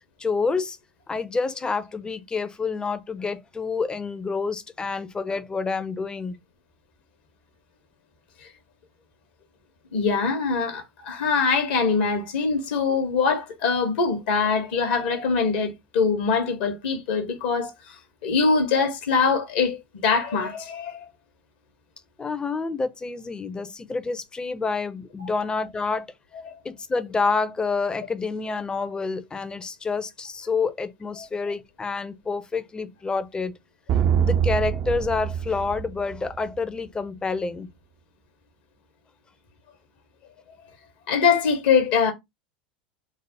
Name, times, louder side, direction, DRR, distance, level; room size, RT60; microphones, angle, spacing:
voice 1, 0.2-0.8 1.1-6.4 22.2-26.1 26.6-33.6 33.9-37.7, left 4 dB, 15° left, 0.5 m, -28 dB
voice 2, 9.9-17.9 18.2-21.1 26.4-26.5 31.2-31.3 41.1-42.1, left 5 dB, 65° left, 0.9 m, -23 dB
sound 1, 33.9-36.6, right 8 dB, 40° right, 0.4 m, -24 dB
3.3 x 2.0 x 4.0 m
hypercardioid pair, 85°, 5 cm